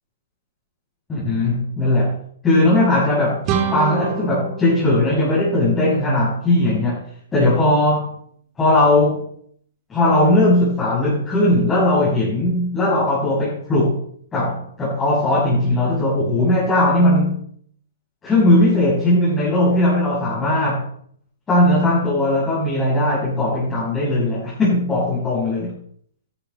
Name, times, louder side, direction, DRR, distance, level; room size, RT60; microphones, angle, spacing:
voice 1, 1.1-2.2 2.4-3.4 3.7-7.0 7.3-8.1 8.6-9.2 9.9-14.0 14.3-17.4 18.2-20.8 21.5-25.8, left 1 dB, 15° left, -9 dB, 7.1 m, -18 dB
sound 1, 3.4-6.2, right 6 dB, 30° right, 1.8 m, -27 dB
13.0 x 12.0 x 4.4 m, 0.64 s
hypercardioid pair, 140°, 0 cm